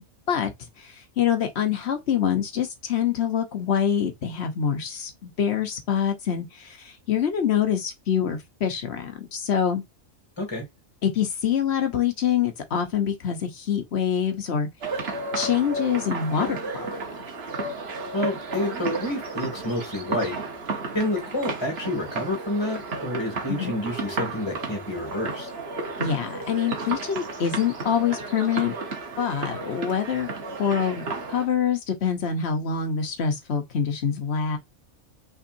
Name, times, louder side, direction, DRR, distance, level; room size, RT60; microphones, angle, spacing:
voice 1, 1.2-6.8 7.1-9.8 11.0-14.7 15.3-16.6 23.5-23.7 26.0-28.7 29.2-30.3 30.6-34.6, left 8 dB, 55° left, 1.1 m, -25 dB
sound 1, 14.8-31.5, right 3 dB, 50° right, 1.2 m, -33 dB
voice 2, 18.1-20.4 20.9-25.5, left 1 dB, 20° left, 2.4 m, -29 dB
5.7 x 3.5 x 2.6 m
omnidirectional pair, 1.4 m